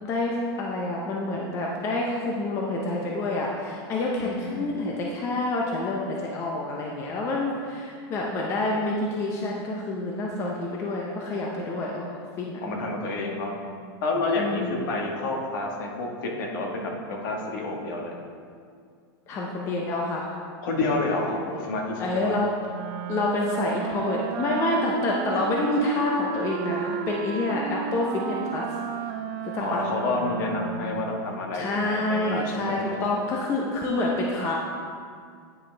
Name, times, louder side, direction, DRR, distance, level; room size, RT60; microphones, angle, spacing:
voice 1, 0.0-12.6 13.4-13.5 14.4-14.7 19.3-20.3 22.0-22.5 23.1-28.6 29.5-29.8 31.5-34.6, left 2 dB, 20° left, -2 dB, 0.6 m, -28 dB
voice 2, 4.2-4.7 12.6-13.5 14.0-18.2 20.6-22.3 29.6-33.0, left 2 dB, 55° left, 0 dB, 1.4 m, -29 dB
Wind instrument woodwind instrument, 22.7-31.2, right 8 dB, 35° right, 0.4 m, -33 dB
9.6 x 6.5 x 3.3 m, 2.2 s
supercardioid pair, 170°, 13 cm